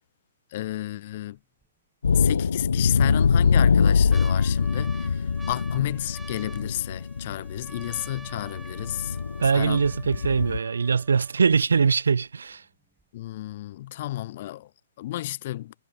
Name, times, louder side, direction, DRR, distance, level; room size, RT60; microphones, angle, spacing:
voice 1, 0.5-1.4 2.1-9.2 9.5-9.8 13.1-14.7 15.0-15.7, left 15 dB, 45° left, 2.9 m, -32 dB
sound 1, 1.6-1.7 2.6-3.1 3.6-11.6 12.3-12.4 12.5-13.0 13.5-13.6, right 3 dB, 5° right, 5.1 m, -48 dB
sound 2, 2.0-10.6, left 5 dB, 65° left, 0.4 m, -23 dB
voice 2, 9.4-12.6, right 5 dB, 65° right, 1.1 m, -22 dB
figure-of-eight pair, 120°, 0 cm